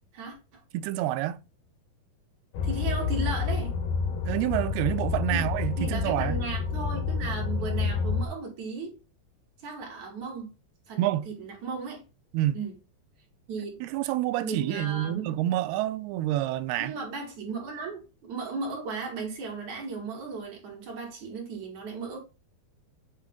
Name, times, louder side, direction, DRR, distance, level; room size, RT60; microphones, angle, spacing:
voice 1, 0.1-0.6 2.6-3.8 5.3-5.4 5.8-8.9 9.6-10.5 10.9-12.0 12.5-12.8 13.5-13.9 14.4-15.3 16.8-22.2, right 4 dB, 50° right, 3.2 m, -36 dB
voice 2, 0.7-1.4 4.3-6.4 11.0-11.3 12.3-12.6 13.8-16.9, right 14 dB, 90° right, 2.6 m, -28 dB
sound 1, 2.5-8.3, left 5 dB, 70° left, 2.6 m, -29 dB
8.4 x 3.2 x 3.7 m
omnidirectional pair, 4.4 m